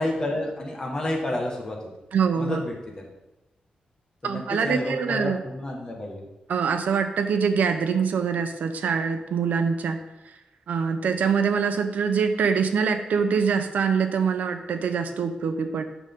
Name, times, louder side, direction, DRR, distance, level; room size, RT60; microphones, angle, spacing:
voice 1, 0.0-1.9 2.4-3.1 4.2-6.3, left 1 dB, 25° left, -1 dB, 1.7 m, -30 dB
voice 2, 2.1-2.6 4.2-5.4 6.5-10.0 10.7-15.8, right 6 dB, 80° right, 7 dB, 0.8 m, -24 dB
8.1 x 6.4 x 3.8 m, 0.97 s
wide cardioid pair, 155°, 3 cm